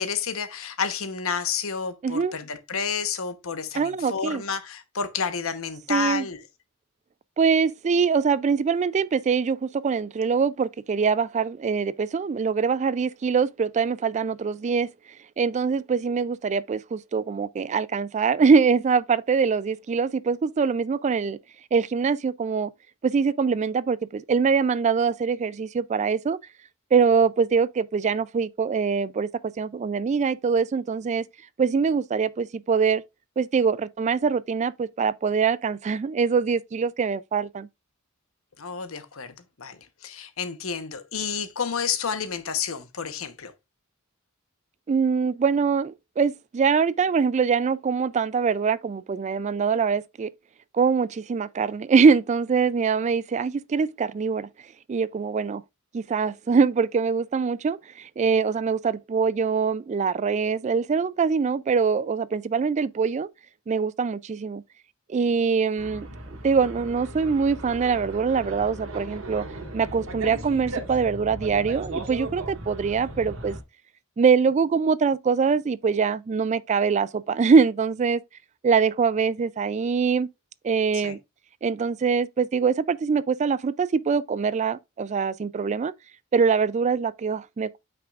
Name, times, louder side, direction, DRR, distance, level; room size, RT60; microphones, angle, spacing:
voice 1, 0.0-6.4 38.6-43.5 80.9-81.2, left 6 dB, 70° left, 1.0 m, -30 dB
voice 2, 3.8-4.4 5.9-6.3 7.4-14.9 15.4-21.4 21.7-22.7 23.0-26.4 26.9-29.3 29.6-31.2 31.6-33.0 33.4-37.7 44.9-50.3 50.7-54.5 54.9-55.6 55.9-63.3 63.7-64.6 65.1-66.1 66.4-69.4 69.7-73.6 74.2-78.2 78.6-80.3 80.6-81.2 81.6-85.9 86.3-87.8, right 5 dB, 30° right, 0.3 m, -23 dB
sound 1, 65.8-73.6, right 1 dB, 65° right, 1.7 m, -37 dB
8.4 x 5.9 x 2.4 m
head